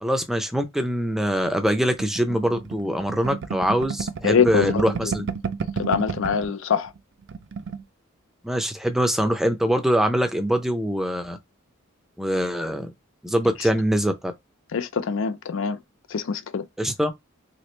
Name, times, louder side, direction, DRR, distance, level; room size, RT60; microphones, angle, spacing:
voice 1, 0.0-5.3 8.4-11.4 12.2-12.9 13.2-14.3 16.8-17.1, equal, ahead, 0.5 m, -23 dB
sound 1, 2.0-6.5 6.9-7.0 7.2-7.8, right 5 dB, 60° right, 0.4 m, -31 dB
voice 2, 4.2-4.9 5.8-6.9 14.7-15.8 16.1-16.7, left 6 dB, 70° left, 0.4 m, -23 dB
3.0 x 2.9 x 3.1 m
head